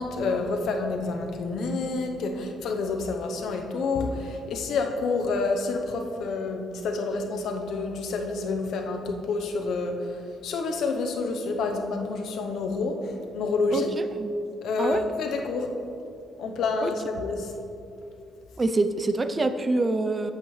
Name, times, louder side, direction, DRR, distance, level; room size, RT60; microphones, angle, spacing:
voice 1, 0.0-13.9 14.6-15.7 16.4-17.5, left 3 dB, 75° left, 4 dB, 0.8 m, -28 dB
voice 2, 18.6-20.3, right 2 dB, 30° right, 10 dB, 0.5 m, -25 dB
8.2 x 8.0 x 3.2 m, 2.7 s
cardioid pair, 90°, 0 cm